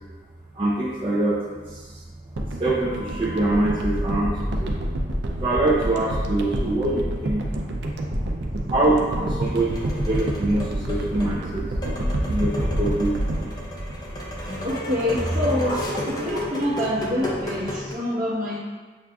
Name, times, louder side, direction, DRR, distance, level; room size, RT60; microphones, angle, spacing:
voice 1, 0.5-2.0 2.4-4.8 5.4-7.8 8.1-8.3 8.7-11.9 12.3-14.2, right 2 dB, 30° right, -8 dB, 0.5 m, -25 dB
sound 1, 2.4-14.7 15.0-15.1, right 1 dB, 80° right, 0.5 m, -28 dB
sound 2, 9.4-17.9, left 1 dB, 25° left, 0.5 m, -33 dB
voice 2, 14.6-15.8 16.0-18.6, left 1 dB, 50° right, -8 dB, 1.1 m, -26 dB
7.3 x 2.4 x 2.3 m, 1.4 s
head